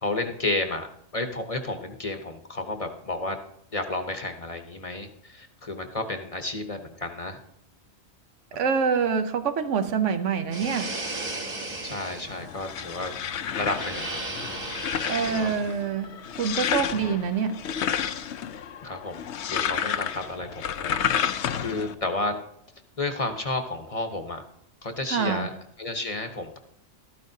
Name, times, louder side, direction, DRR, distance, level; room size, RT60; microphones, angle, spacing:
voice 1, 0.0-3.4 3.7-7.4 11.8-13.1 13.5-14.2 15.2-15.5 18.8-22.3 23.0-24.4 24.8-25.5 25.8-26.6, left 2 dB, 35° left, 5 dB, 0.9 m, -32 dB
voice 2, 8.6-11.0 15.0-17.6 25.1-25.5, right 6 dB, 80° right, 8 dB, 1.1 m, -26 dB
sound 1, 10.5-15.8, right 2 dB, 40° right, 1.5 m, -36 dB
sound 2, 12.3-21.9, left 8 dB, 75° left, 0.9 m, -31 dB
13.0 x 13.0 x 2.7 m, 0.72 s
omnidirectional pair, 1.2 m